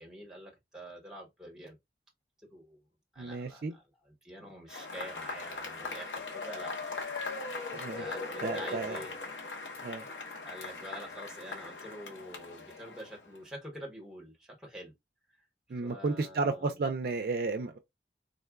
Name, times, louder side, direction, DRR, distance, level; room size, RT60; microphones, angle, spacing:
voice 1, 0.0-1.8 2.5-2.8 3.1-6.7 8.0-9.2 10.4-14.9 15.7-16.8, equal, 5° right, 0.9 m, -47 dB
voice 2, 3.2-3.7 7.7-8.0 8.4-9.0 9.8-10.0 15.7-17.8, right 3 dB, 55° right, 0.4 m, -33 dB
Cheering / Applause / Crowd, 4.7-13.4, left 3 dB, 85° left, 0.8 m, -40 dB
3.7 x 2.2 x 2.3 m
head